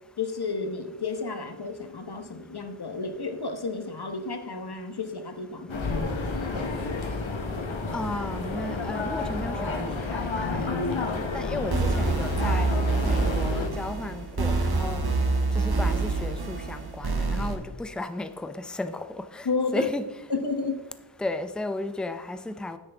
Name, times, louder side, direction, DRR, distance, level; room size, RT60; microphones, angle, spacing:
voice 1, 0.2-6.1 15.0-15.1 19.4-19.9 20.3-20.8, left 4 dB, 55° left, 7 dB, 1.2 m, -32 dB
sound 1, 5.7-13.7, left 3 dB, 85° left, 1.3 m, -30 dB
voice 2, 7.9-11.0 11.3-12.7 13.1-15.0 15.6-19.5 19.7-20.0 21.2-22.8, left 2 dB, ahead, 9 dB, 0.6 m, -34 dB
sound 2, 11.7-17.6, right 3 dB, 55° right, 1.3 m, -26 dB
9.8 x 8.7 x 3.5 m, 1.1 s
wide cardioid pair, 55°, 46 cm